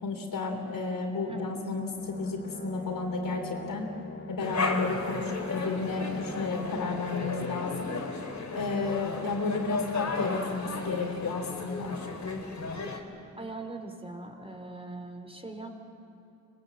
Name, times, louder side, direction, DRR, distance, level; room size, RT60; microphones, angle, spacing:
voice 1, 0.0-3.9 4.3-8.0 8.5-12.0, left 3 dB, 85° left, 4 dB, 3.7 m, -32 dB
Brass instrument, 2.0-7.5, left 4 dB, 35° left, 1.2 m, -44 dB
sound 1, 4.4-13.0, left 3 dB, 55° left, 3.2 m, -34 dB
voice 2, 13.4-15.8, right 2 dB, 15° right, 4 dB, 3.6 m, -41 dB
25.5 x 20.5 x 8.6 m, 2.7 s
cardioid pair, 70°, 33 cm